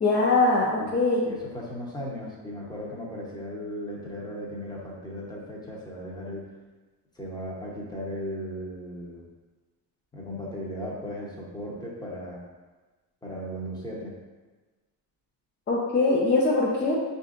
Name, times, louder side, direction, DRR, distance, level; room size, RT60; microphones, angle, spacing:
voice 1, 0.0-1.2 15.7-16.9, left 3 dB, 25° left, -3 dB, 0.5 m, -22 dB
voice 2, 0.8-6.4 7.2-9.2 10.1-12.4 13.2-14.1, equal, 10° left, -4 dB, 0.9 m, -36 dB
5.4 x 2.6 x 2.5 m, 1.3 s
cardioid pair, 110°, 41 cm